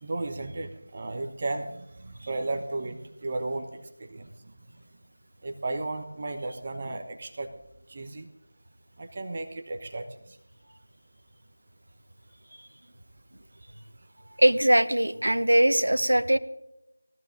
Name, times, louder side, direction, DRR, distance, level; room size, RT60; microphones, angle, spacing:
voice 1, 0.0-4.3 5.4-7.5 7.9-8.3 9.0-10.4, right 2 dB, 25° right, 6 dB, 1.0 m, -34 dB
voice 2, 14.4-16.4, right 1 dB, 70° right, 13 dB, 1.0 m, -21 dB
18.5 x 14.0 x 3.7 m, 0.87 s
figure-of-eight pair, 170°, 0 cm